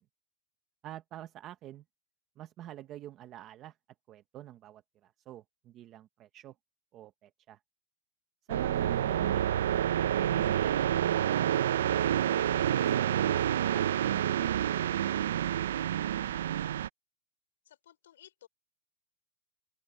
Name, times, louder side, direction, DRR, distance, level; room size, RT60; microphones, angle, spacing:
voice 1, 0.8-1.8 2.4-3.8 4.1-6.5 6.9-7.6 8.5-9.6 10.2-15.6 16.0-16.3, right 12 dB, 20° right, 0.7 m, -48 dB
sound 1, 8.5-16.9, right 10 dB, 85° right, 0.4 m, -28 dB
voice 2, 17.7-18.5, left 11 dB, 90° left, 4.1 m, -57 dB
open air
supercardioid pair, 175°, 0 cm